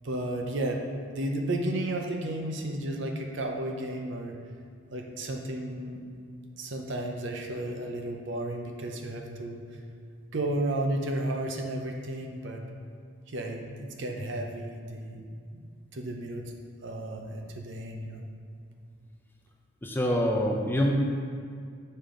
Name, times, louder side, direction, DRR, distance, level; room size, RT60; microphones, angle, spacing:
voice 1, 0.0-0.8 1.1-4.4 4.9-6.0 6.6-9.6 10.3-12.6 13.3-15.2 15.5-16.5 16.8-18.2, right 1 dB, 60° right, 2 dB, 0.7 m, -33 dB
voice 2, 19.8-20.9, equal, 10° left, 0 dB, 0.4 m, -25 dB
6.5 x 5.4 x 3.8 m, 2.3 s
head